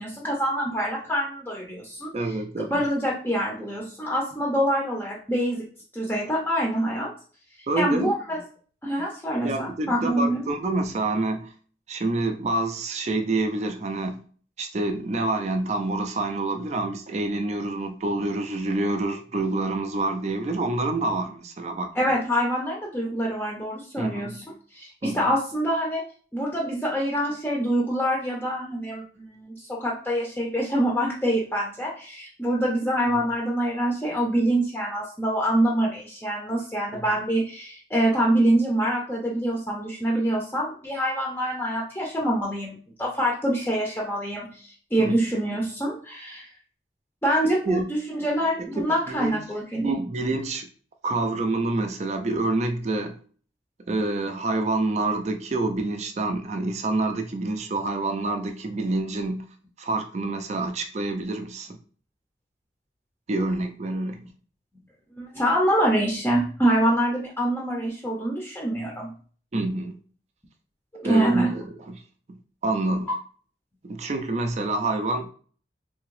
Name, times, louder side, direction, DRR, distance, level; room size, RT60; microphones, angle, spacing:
voice 1, 0.0-2.1 2.7-5.7 5.9-7.1 7.8-8.4 8.8-10.5 12.5-12.6 21.9-24.4 24.7-26.0 26.3-46.5 47.2-49.9 65.2-69.1 70.9-71.5, right 1 dB, 10° left, -2 dB, 0.6 m, -25 dB
voice 2, 2.1-2.8 7.7-8.1 9.4-11.5 11.9-14.2 14.6-21.9 24.0-24.3 25.0-25.3 36.9-37.0 45.0-45.2 47.7-47.9 48.8-49.4 49.8-50.7 51.0-53.2 53.9-59.5 59.8-61.7 63.3-64.2 69.5-70.0 71.0-72.0 72.3-73.1 73.8-75.3, right 2 dB, 40° right, 6 dB, 0.4 m, -27 dB
3.4 x 2.9 x 3.2 m, 0.43 s
head